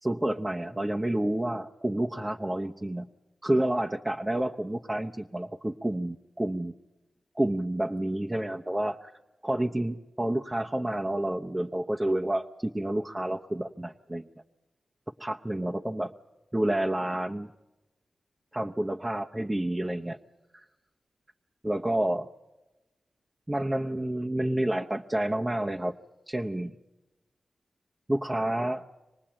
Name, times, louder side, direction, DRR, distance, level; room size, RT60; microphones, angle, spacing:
voice 1, 0.0-3.1 3.4-6.7 7.4-9.1 9.4-14.2 15.2-16.1 16.5-17.5 18.5-20.2 21.6-22.3 23.5-25.9 26.3-26.7 28.1-28.8, right 1 dB, 20° right, 1 dB, 0.9 m, -29 dB
25.5 x 19.0 x 8.8 m, 1.1 s
cardioid pair, 55°, 0 cm